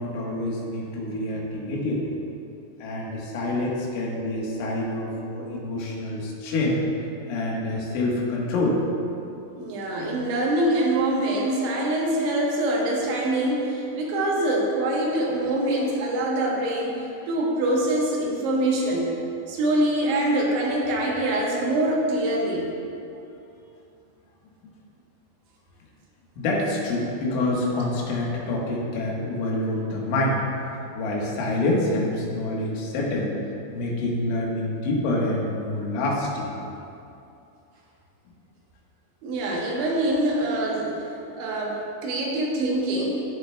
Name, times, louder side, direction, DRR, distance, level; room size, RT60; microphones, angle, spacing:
voice 1, 0.0-2.1 2.8-6.8 7.3-8.8 26.4-30.4 31.0-33.3 33.7-36.5, left 2 dB, 90° left, -3 dB, 3.8 m, -26 dB
voice 2, 9.6-19.1 19.5-22.7 39.2-41.1 41.4-43.3, right 1 dB, 80° right, -2 dB, 3.5 m, -24 dB
16.5 x 6.8 x 2.3 m, 2.7 s
omnidirectional pair, 5.3 m